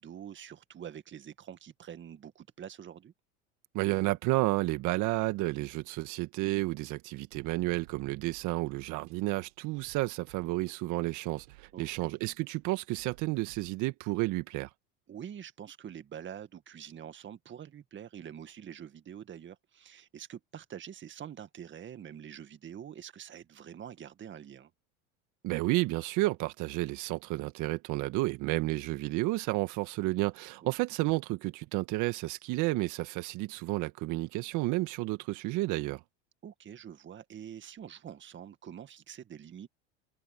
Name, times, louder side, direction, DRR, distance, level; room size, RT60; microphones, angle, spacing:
voice 1, 0.0-3.1 11.7-12.1 15.1-24.7 30.6-30.7 36.4-39.7, right 9 dB, 30° right, 2.0 m, -46 dB
voice 2, 3.7-14.7 25.4-36.0, right 20 dB, 55° right, 1.8 m, -31 dB
sound 1, 7.3-13.7, right 22 dB, 75° right, 5.3 m, -58 dB
hypercardioid pair, 90°, 35 cm